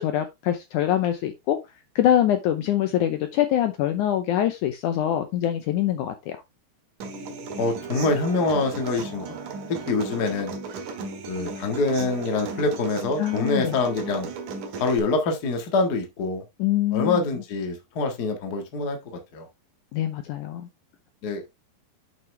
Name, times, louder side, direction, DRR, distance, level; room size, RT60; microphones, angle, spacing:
voice 1, 0.0-1.6 1.9-6.4 13.2-13.7 16.6-17.2 19.9-20.7, left 11 dB, 90° left, 1.7 m, -24 dB
Human voice / Acoustic guitar, 7.0-15.0, right 4 dB, 60° right, 2.7 m, -36 dB
voice 2, 7.6-9.3 9.7-10.5 11.3-14.3 14.8-16.4 16.9-19.5 21.2-21.4, left 3 dB, 50° left, 1.2 m, -25 dB
9.1 x 5.7 x 3.3 m
omnidirectional pair, 4.5 m